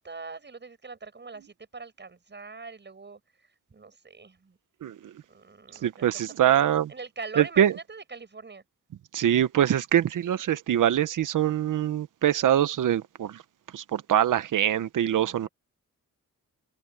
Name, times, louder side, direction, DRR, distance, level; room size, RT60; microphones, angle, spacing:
voice 1, 0.0-3.2 3.7-4.6 5.3-6.1 6.4-8.6 15.1-15.5, right 4 dB, 35° right, 7.2 m, -42 dB
voice 2, 4.8-5.1 5.8-6.9 7.4-7.7 9.1-13.4 13.7-15.5, right 10 dB, 80° right, 0.9 m, -24 dB
wide cardioid pair, 115°, 31 cm